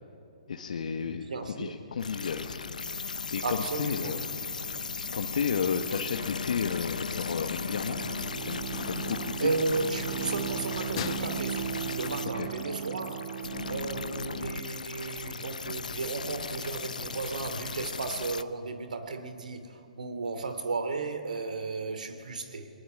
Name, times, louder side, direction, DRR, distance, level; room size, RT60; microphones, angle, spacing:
voice 1, 0.5-2.6 3.3-4.2 5.1-8.0 8.4-9.5 12.3-12.5, left 6 dB, 70° left, 3 dB, 1.7 m, -32 dB
voice 2, 1.3-1.7 3.4-4.2 9.4-13.4 13.7-22.8, right 3 dB, 80° right, 9 dB, 3.1 m, -34 dB
sound 1, 2.0-18.4, left 5 dB, 90° left, 0.8 m, -37 dB
sound 2, 4.8-12.7, left 11 dB, 50° left, 1.0 m, -45 dB
Bowed string instrument, 7.1-14.9, right 11 dB, 55° right, 0.8 m, -38 dB
29.0 x 20.5 x 9.9 m, 2.6 s
hypercardioid pair, 140°, 4 cm